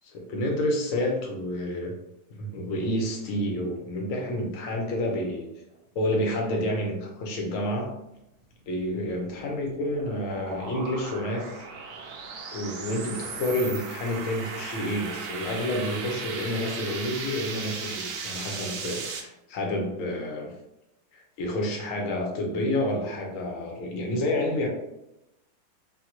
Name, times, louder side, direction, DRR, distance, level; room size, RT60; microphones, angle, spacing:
voice 1, 0.1-1.9 2.3-5.5 5.9-7.9 8.7-11.7 12.5-20.5 21.1-24.7, left 1 dB, 70° left, 0 dB, 0.7 m, -29 dB
sound 1, 8.6-19.2, right 5 dB, 75° right, 0.9 m, -37 dB
3.5 x 2.1 x 2.9 m, 0.88 s
omnidirectional pair, 2.1 m